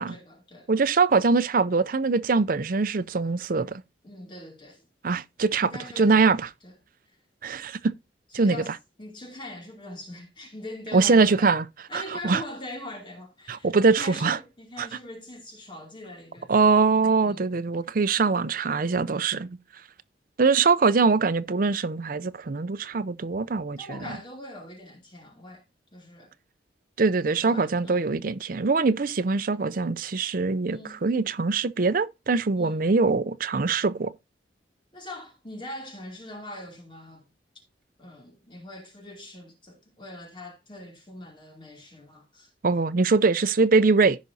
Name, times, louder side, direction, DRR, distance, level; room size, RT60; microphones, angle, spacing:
voice 1, 0.0-0.7 4.0-4.8 5.6-6.3 6.6-6.7 8.3-8.7 9.0-11.5 11.9-16.5 17.2-17.5 23.8-25.6 25.9-26.3 27.4-28.0 30.7-31.0 32.6-32.9 34.9-37.3 38.0-42.5, left 1 dB, 25° left, 2.6 m, -42 dB
voice 2, 0.7-3.8 5.0-5.7 6.0-6.5 7.4-7.9 8.3-8.6 10.9-11.7 11.9-12.4 13.5-14.4 14.8-14.9 16.5-19.5 20.4-24.0 27.0-34.1 42.6-44.2, right 4 dB, 50° right, 0.5 m, -23 dB
15.5 x 5.2 x 2.7 m
head